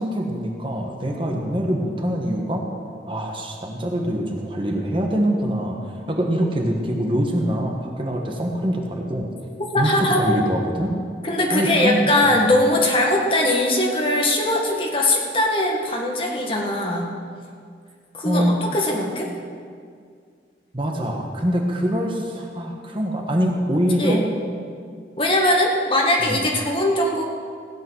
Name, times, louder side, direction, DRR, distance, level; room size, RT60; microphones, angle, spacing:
voice 1, 0.0-2.7 3.0-5.8 6.1-9.3 9.8-10.9 11.5-12.3 18.2-18.6 20.7-24.3 26.2-26.4, equal, 30° right, 1 dB, 1.3 m, -24 dB
voice 2, 9.7-10.4 11.2-17.1 18.1-19.3 24.0-24.2 25.2-27.2, left 1 dB, 30° left, 0 dB, 1.7 m, -20 dB
16.0 x 8.9 x 6.3 m, 2.1 s
head